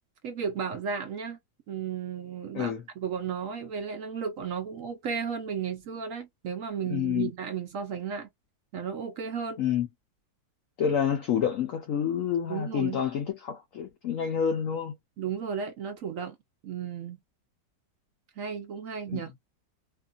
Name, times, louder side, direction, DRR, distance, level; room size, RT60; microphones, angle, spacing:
voice 1, 0.2-1.4 1.7-8.3 8.7-9.6 12.5-13.0 15.2-16.4 16.6-17.2 18.4-19.3, right 7 dB, 65° right, 0.8 m, -34 dB
voice 2, 6.9-7.3 9.6-9.9 10.8-15.0 19.1-19.2, left 8 dB, 80° left, 0.7 m, -28 dB
2.9 x 2.5 x 2.3 m
omnidirectional pair, 1.9 m